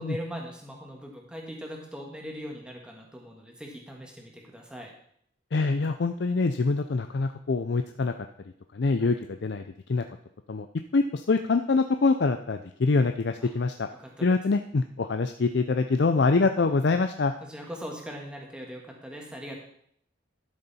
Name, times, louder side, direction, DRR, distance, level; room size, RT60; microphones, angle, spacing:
voice 1, 0.0-4.9 13.4-13.5 14.0-14.2 17.4-19.6, equal, 5° right, 0 dB, 1.7 m, -40 dB
voice 2, 5.5-8.1 8.7-9.6 9.9-10.0 10.5-10.7 10.9-13.9 14.2-17.3, left 3 dB, 60° left, 7 dB, 0.5 m, -25 dB
12.0 x 6.8 x 4.2 m, 0.67 s
head